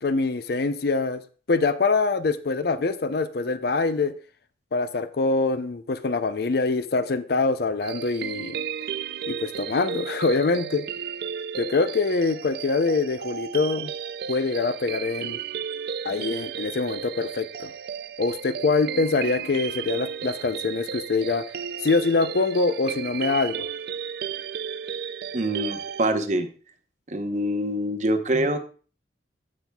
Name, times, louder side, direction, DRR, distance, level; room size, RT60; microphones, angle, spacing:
voice 1, 0.0-1.2 1.5-4.1 4.7-8.6 9.3-10.9 11.6-13.9 14.3-15.4 16.0-17.7 18.2-21.4 21.8-23.7, left 3 dB, 55° left, 12 dB, 0.5 m, -24 dB
sound 1, 7.8-26.1, right 8 dB, 55° right, 0.3 m, -34 dB
voice 2, 25.3-26.5 27.1-28.6, right 1 dB, 40° right, 9 dB, 0.8 m, -25 dB
15.0 x 5.9 x 2.3 m, 0.39 s
head